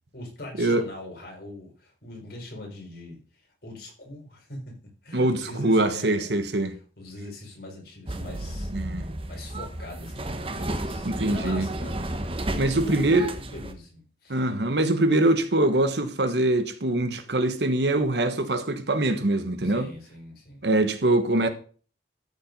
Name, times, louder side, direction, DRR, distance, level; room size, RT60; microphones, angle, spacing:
voice 1, 0.1-3.2 3.6-4.7 5.0-6.3 7.0-8.7 9.3-12.0 12.5-14.8 19.6-20.7, left 2 dB, 60° left, 4.7 m, -41 dB
voice 2, 5.1-6.8 8.7-9.0 11.0-11.7 12.6-13.3 14.3-19.9 20.6-21.5, right 2 dB, 70° right, 1.3 m, -23 dB
sound 1, 8.1-13.7, right 1 dB, 30° right, 1.0 m, -32 dB
13.0 x 5.3 x 5.3 m
head